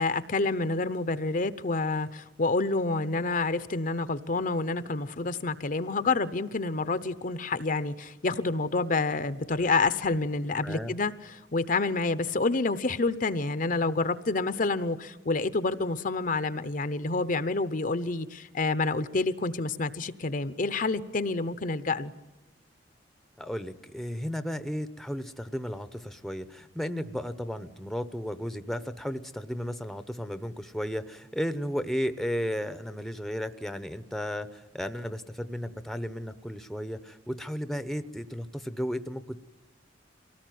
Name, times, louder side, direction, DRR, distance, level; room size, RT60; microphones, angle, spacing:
voice 1, 0.0-22.1, left 3 dB, 45° left, 13 dB, 0.8 m, -28 dB
voice 2, 10.6-10.9 23.4-39.4, equal, ahead, 11 dB, 0.8 m, -34 dB
24.5 x 18.0 x 9.3 m, 1.1 s
head